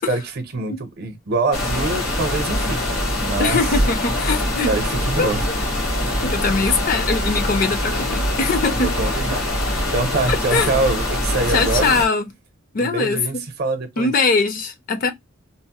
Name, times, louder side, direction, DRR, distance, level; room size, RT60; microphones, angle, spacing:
voice 1, 0.1-3.6 4.7-5.5 6.0-6.3 8.8-9.4 9.9-11.9 12.8-14.1, right 3 dB, 50° right, 0.6 m, -25 dB
sound 1, 1.5-12.1, left 1 dB, 85° left, 1.2 m, -23 dB
voice 2, 3.4-4.7 5.2-5.3 6.2-9.0 10.3-10.7 11.5-12.2 12.7-13.2 14.0-15.1, left 4 dB, 40° left, 0.4 m, -21 dB
2.9 x 2.1 x 2.8 m
head